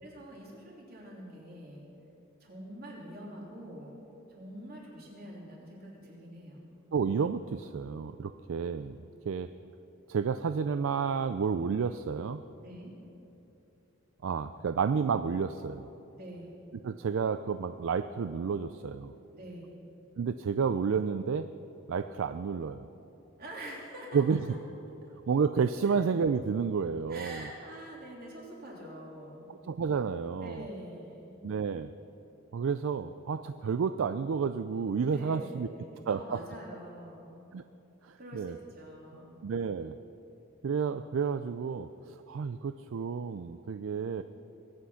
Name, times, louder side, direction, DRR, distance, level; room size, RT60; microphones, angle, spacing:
voice 1, 0.0-1.9 2.4-3.9 4.3-6.6 12.6-12.9 16.1-16.5 19.3-19.8 23.4-24.2 25.8-25.9 27.1-29.5 30.4-31.4 35.1-37.5 38.2-39.4, equal, 45° right, -3 dB, 3.3 m, -45 dB
voice 2, 6.9-9.0 9.3-9.5 10.1-12.4 14.2-15.9 16.8-19.1 20.2-21.5 21.9-22.9 24.1-24.6 25.3-27.5 29.5-30.7 31.4-31.9 32.5-35.7 36.0-36.4 37.5-37.6 38.0-38.6 39.1-39.9 40.6-44.2, right 6 dB, 65° right, 11 dB, 0.4 m, -31 dB
22.0 x 8.6 x 5.7 m, 2.9 s
head